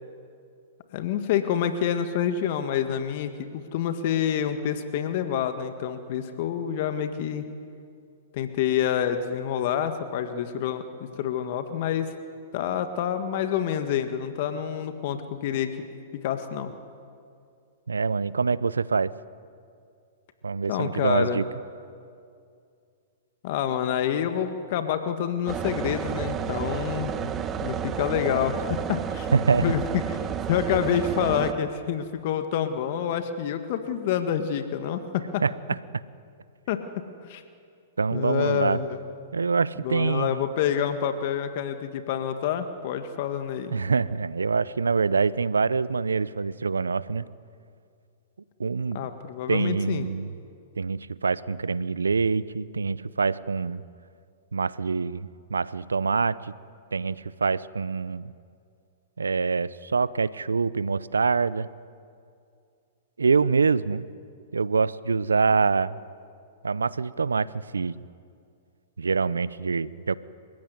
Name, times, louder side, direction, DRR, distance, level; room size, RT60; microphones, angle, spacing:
voice 1, 0.9-7.5 8.3-12.1 12.5-15.7 16.2-16.7 20.7-21.5 23.4-27.1 27.6-29.3 29.6-29.8 30.5-35.4 36.7-37.0 37.3-37.4 38.1-39.0 39.8-43.7 48.9-50.1, left 9 dB, 55° left, 8 dB, 1.7 m, -27 dB
voice 2, 17.9-19.1 20.4-21.4 29.3-29.7 35.4-35.8 38.0-38.8 39.3-40.4 43.7-47.3 48.6-49.0 49.5-50.3 50.8-53.8 54.5-56.5 56.9-58.3 59.2-61.7 63.2-64.1 64.5-66.0 66.6-68.0 69.0-70.1, right 4 dB, 90° right, 19 dB, 0.7 m, -25 dB
sound 1, 25.5-31.5, right 8 dB, 25° right, 1.4 m, -31 dB
30.0 x 16.0 x 9.6 m, 2.4 s
hypercardioid pair, 115°, 0 cm